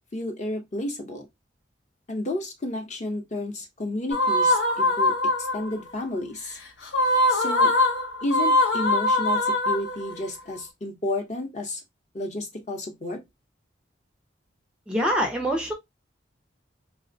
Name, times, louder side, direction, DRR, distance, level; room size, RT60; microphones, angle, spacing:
voice 1, 0.1-1.3 2.1-6.6 7.3-7.7 8.2-11.8 12.1-13.2, left 1 dB, 35° left, 0.6 m, -31 dB
sound 1, 4.1-5.8 6.9-10.3, left 1 dB, 75° left, 0.7 m, -22 dB
voice 2, 14.9-15.7, equal, 5° right, 0.4 m, -24 dB
3.2 x 2.0 x 2.5 m
head